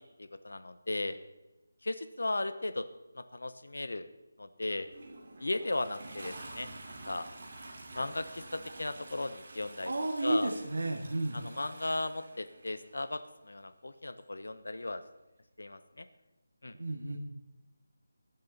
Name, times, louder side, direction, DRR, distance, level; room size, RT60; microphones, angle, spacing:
voice 1, 0.2-1.2 1.8-2.9 3.1-4.1 4.4-4.9 5.4-7.3 7.9-9.9 10.2-10.5 11.3-15.0 15.6-16.0 16.6-16.7, left 2 dB, 90° left, 11 dB, 1.0 m, -36 dB
Toilet flush, 4.7-13.1 14.2-14.3, right 2 dB, 35° right, 2.8 m, -49 dB
voice 2, 9.9-11.4 16.8-17.2, right 2 dB, 70° right, 1 dB, 2.0 m, -32 dB
15.5 x 10.5 x 4.1 m, 1.0 s
figure-of-eight pair, 175°, 0 cm